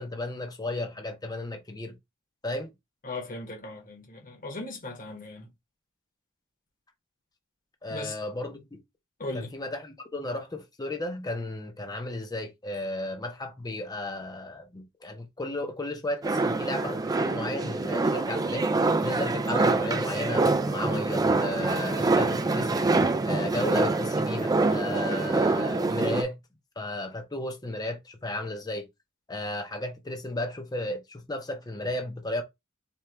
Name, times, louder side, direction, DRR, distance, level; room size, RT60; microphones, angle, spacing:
voice 1, 0.0-2.0 2.4-2.7 7.8-8.8 9.3-18.7 19.0-22.9 23.2-26.4 26.8-28.9 29.3-32.4, left 1 dB, 20° left, 0.7 m, -34 dB
voice 2, 3.0-5.5 7.9-8.2 9.2-9.5, left 2 dB, 40° left, 1.3 m, -38 dB
sound 1, 16.2-26.2, right 3 dB, 15° right, 0.3 m, -25 dB
4.4 x 2.4 x 3.3 m
head